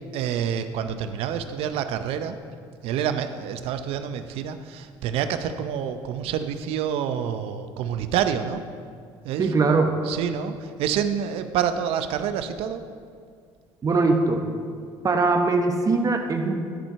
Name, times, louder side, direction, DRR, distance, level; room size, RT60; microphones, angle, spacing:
voice 1, 0.1-2.4 2.8-8.6 9.2-9.7 10.0-12.8, right 8 dB, 75° right, 9 dB, 0.6 m, -27 dB
voice 2, 9.4-10.0 13.8-14.4 15.0-16.6, right 3 dB, 35° right, 5 dB, 1.0 m, -21 dB
11.5 x 4.4 x 5.6 m, 2.1 s
supercardioid pair, 85°, 10 cm